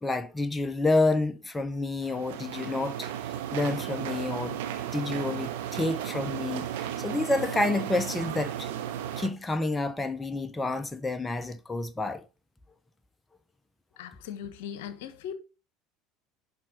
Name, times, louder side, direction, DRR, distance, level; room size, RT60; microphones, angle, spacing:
voice 1, 0.0-3.1 3.5-4.6 4.9-8.7 9.2-12.2, left 2 dB, 15° left, 0.8 m, -29 dB
sound 1, 2.0-9.3, right 10 dB, 70° right, 0.9 m, -34 dB
voice 2, 14.0-15.3, left 8 dB, 70° left, 0.9 m, -39 dB
11.5 x 4.3 x 3.6 m
hypercardioid pair, 70°, 0 cm